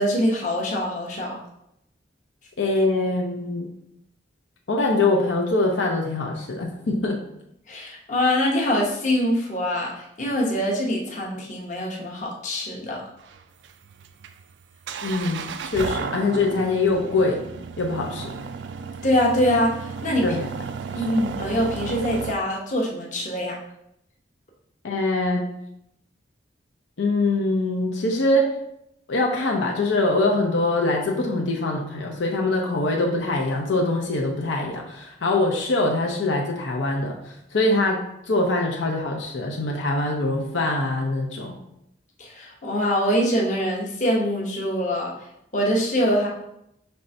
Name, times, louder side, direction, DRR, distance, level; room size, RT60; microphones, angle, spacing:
voice 1, 0.0-1.4 7.7-13.0 19.0-19.7 20.0-20.2 20.9-23.5 42.2-45.1 45.5-46.3, equal, 40° left, -2 dB, 0.8 m, -24 dB
voice 2, 2.6-3.7 4.7-7.2 15.0-17.4 17.8-18.3 20.2-20.4 24.8-25.5 27.0-28.5 29.1-41.5, left 2 dB, 80° left, 0 dB, 0.6 m, -23 dB
sound 1, 13.2-22.3, right 5 dB, 70° right, 0.3 m, -34 dB
5.4 x 3.2 x 2.6 m, 0.79 s
head